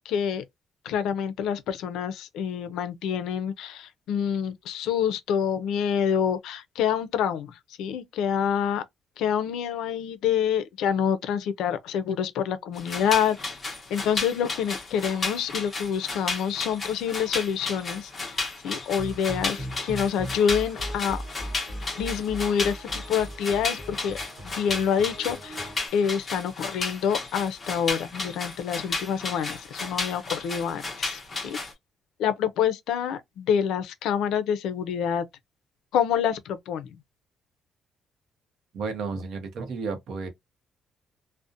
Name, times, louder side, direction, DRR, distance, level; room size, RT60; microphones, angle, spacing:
voice 1, 0.1-0.4 0.9-7.5 7.8-8.8 9.2-13.4 13.9-18.1 18.6-21.2 22.0-24.2 24.4-25.6 25.9-31.6 32.2-35.3 35.9-36.9, left 8 dB, 85° left, 0.4 m, -27 dB
sound 1, 12.7-31.7, left 3 dB, 25° left, 0.8 m, -33 dB
sound 2, 18.9-25.9, equal, 25° right, 0.8 m, -38 dB
voice 2, 38.7-40.3, right 4 dB, 60° right, 0.7 m, -32 dB
2.5 x 2.0 x 2.5 m
cardioid pair, 165°, 0 cm